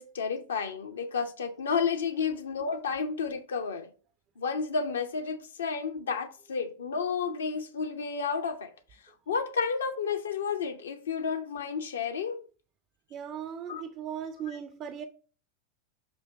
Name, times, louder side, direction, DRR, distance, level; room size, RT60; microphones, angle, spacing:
voice 1, 0.0-3.9 4.4-8.7 9.3-12.4 13.7-13.8, left 5 dB, 65° left, 0.8 m, -31 dB
voice 2, 13.1-15.1, right 8 dB, 30° right, 0.5 m, -38 dB
6.6 x 2.8 x 5.6 m
figure-of-eight pair, 90°, 0 cm